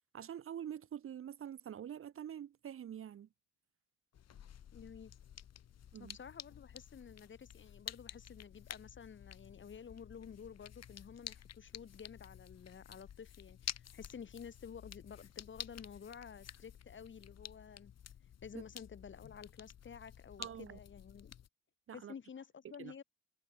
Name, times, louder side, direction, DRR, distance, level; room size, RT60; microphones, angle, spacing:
voice 1, 0.1-3.3 5.9-6.2 18.5-18.6 20.4-20.8 21.9-22.1 22.8-22.9, right 9 dB, 45° right, 0.7 m, -46 dB
sound 1, 4.1-21.5, left 9 dB, 55° left, 2.3 m, -51 dB
voice 2, 4.7-5.1 6.0-17.9 18.4-21.3 21.9-23.0, left 7 dB, 40° left, 1.6 m, -52 dB
cardioid pair, 90°, 30 cm